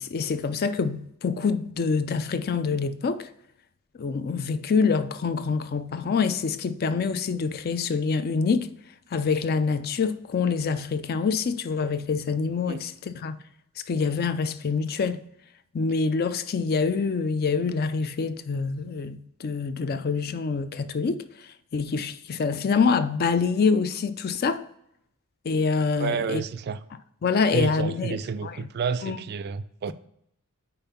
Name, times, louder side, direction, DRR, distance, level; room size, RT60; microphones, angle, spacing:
voice 1, 0.0-3.3 4.0-8.7 9.1-13.4 13.9-15.2 15.7-21.2 21.7-24.6 25.5-26.4 27.2-28.2 28.4-28.6 29.0-29.2, left 5 dB, 45° left, 0.4 m, -26 dB
voice 2, 26.0-26.8 27.5-29.9, right 6 dB, 45° right, 0.3 m, -30 dB
5.4 x 4.5 x 5.7 m
head